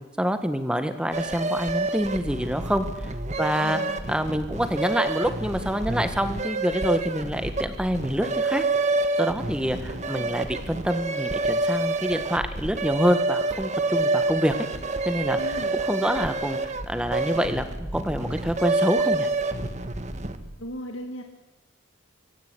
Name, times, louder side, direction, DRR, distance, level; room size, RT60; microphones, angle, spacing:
voice 1, 0.2-2.8 3.4-3.8 4.1-8.6 9.2-14.5 15.0-15.4 15.9-19.3, equal, 5° right, 9 dB, 1.7 m, -26 dB
sound 1, 1.1-20.5, right 2 dB, 35° right, 1.5 m, -28 dB
voice 2, 3.3-4.0 9.6-10.4 15.4-15.8 20.6-21.2, equal, 75° left, 4 dB, 2.0 m, -38 dB
24.5 x 15.0 x 9.9 m, 1.1 s
head